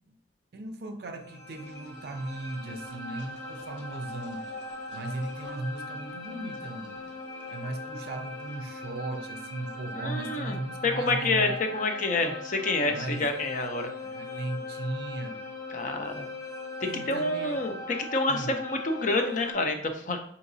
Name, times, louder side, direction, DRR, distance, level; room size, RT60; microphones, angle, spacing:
voice 1, 0.5-4.4 4.9-7.2 7.5-11.6 12.9-13.3 14.0-15.4 16.9-17.6 18.3-18.6, right 2 dB, 55° right, 6 dB, 0.4 m, -37 dB
sound 1, 1.2-19.5, left 2 dB, 80° left, 1.1 m, -40 dB
voice 2, 10.0-10.6 10.8-13.9 15.7-16.3 16.8-20.2, left 2 dB, 45° left, 6 dB, 0.5 m, -28 dB
5.7 x 2.8 x 2.6 m, 0.66 s
head